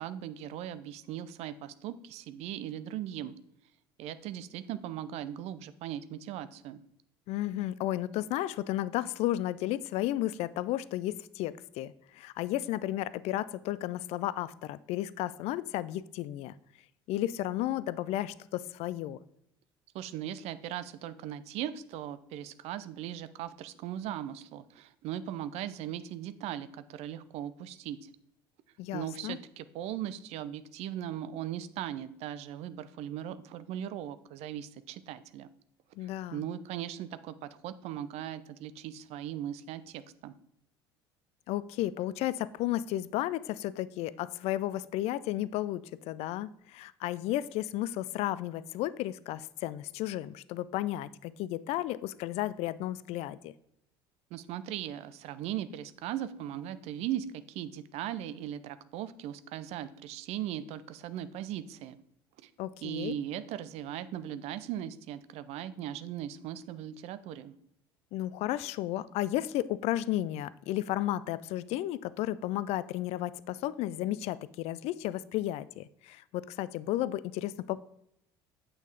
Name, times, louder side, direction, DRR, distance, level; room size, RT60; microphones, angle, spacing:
voice 1, 0.0-3.4 4.0-6.8 19.9-28.1 28.9-35.5 36.0-40.3 54.3-62.0 62.4-62.5 62.8-67.6, right 11 dB, 50° right, 14 dB, 0.6 m, -38 dB
voice 2, 7.3-16.5 17.1-19.2 28.8-29.4 36.0-36.4 41.5-53.5 62.6-63.1 68.1-77.8, left 14 dB, 50° left, 18 dB, 0.4 m, -33 dB
8.9 x 5.6 x 3.4 m, 0.75 s
figure-of-eight pair, 60°, 13 cm